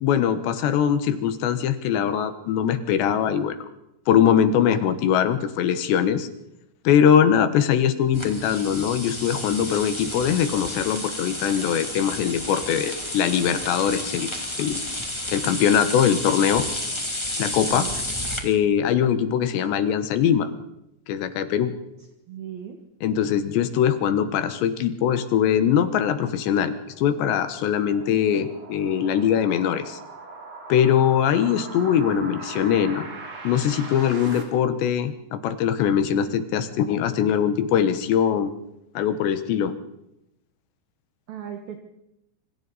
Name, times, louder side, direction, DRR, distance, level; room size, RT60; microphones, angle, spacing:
voice 1, 0.0-3.6 4.1-6.3 6.8-14.3 14.6-14.8 15.3-16.6 17.4-17.9 18.4-20.5 21.1-21.7 23.0-30.0 30.7-33.0 33.4-38.5 38.9-39.7, left 8 dB, 70° left, 10 dB, 3.3 m, -22 dB
sound 1, 8.1-18.4, left 1 dB, 10° left, 1.2 m, -31 dB
voice 2, 17.7-18.0 22.3-22.8 41.3-41.8, right 9 dB, 60° right, 4 dB, 2.9 m, -36 dB
sound 2, 26.3-34.4, right 3 dB, 45° right, 4.5 m, -41 dB
26.5 x 25.5 x 4.2 m, 0.86 s
omnidirectional pair, 5.5 m